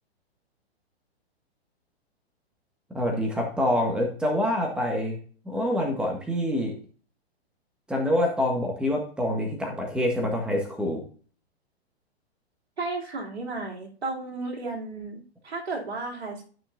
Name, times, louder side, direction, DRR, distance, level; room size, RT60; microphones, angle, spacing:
voice 1, 2.9-5.2 5.4-6.7 7.9-11.0, left 1 dB, 5° right, 0 dB, 1.6 m, -26 dB
voice 2, 12.8-16.4, right 3 dB, 70° right, 0 dB, 2.8 m, -33 dB
13.5 x 6.0 x 2.6 m, 0.41 s
figure-of-eight pair, 110°, 32 cm